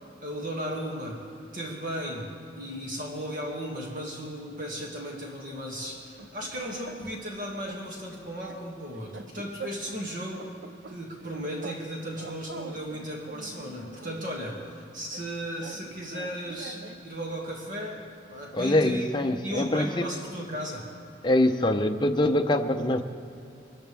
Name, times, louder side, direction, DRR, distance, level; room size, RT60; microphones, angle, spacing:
voice 1, 0.2-1.3 1.5-10.5 10.9-20.9, equal, 50° right, -2 dB, 2.2 m, -36 dB
sound 1, 5.9-7.3 7.6-7.9 8.1-10.0 10.3-11.9 12.1-14.3 15.1-17.1, right 3 dB, 80° right, 0.8 m, -44 dB
voice 2, 18.5-20.1 21.2-23.0, left 1 dB, 25° left, 5 dB, 0.7 m, -24 dB
25.0 x 14.5 x 3.5 m, 2.6 s
head